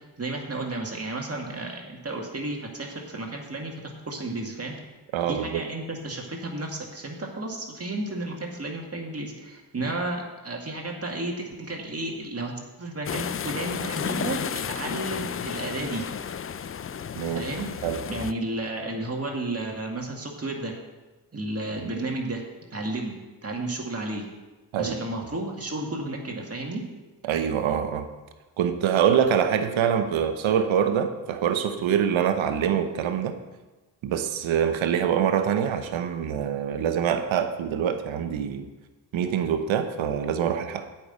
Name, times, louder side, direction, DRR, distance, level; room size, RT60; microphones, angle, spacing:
voice 1, 0.2-4.8 5.3-16.0 17.3-17.7 18.1-20.7 21.3-22.4 22.7-24.3 24.8-26.8, right 2 dB, 30° right, 0 dB, 2.2 m, -32 dB
voice 2, 5.1-5.6 17.1-17.4 17.8-18.0 21.8-21.9 24.7-24.9 27.2-28.1 28.6-33.4 34.0-38.7 39.1-40.9, right 8 dB, 85° right, 9 dB, 1.0 m, -25 dB
sound 1, 13.1-18.3, left 7 dB, 30° left, 0.4 m, -32 dB
8.6 x 6.0 x 8.1 m, 1.2 s
cardioid pair, 55°, 45 cm